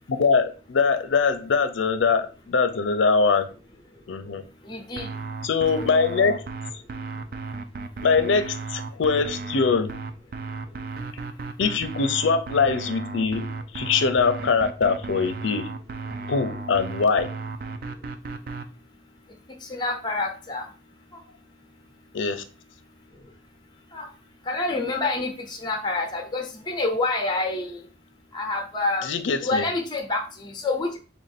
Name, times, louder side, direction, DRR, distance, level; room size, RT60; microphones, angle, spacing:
voice 1, 0.1-3.5 4.1-4.4 5.4-6.5 8.0-9.9 11.6-13.5 13.7-15.7 16.3-17.3 22.1-22.4 29.0-29.7, left 5 dB, 75° left, 0.5 m, -22 dB
voice 2, 4.6-5.1 5.8-5.9 19.6-20.7 23.9-24.1 24.5-27.8 28.3-31.0, left 2 dB, 20° left, 0.6 m, -27 dB
sound 1, 5.0-18.7, right 3 dB, 50° right, 0.3 m, -35 dB
3.4 x 2.5 x 4.1 m
head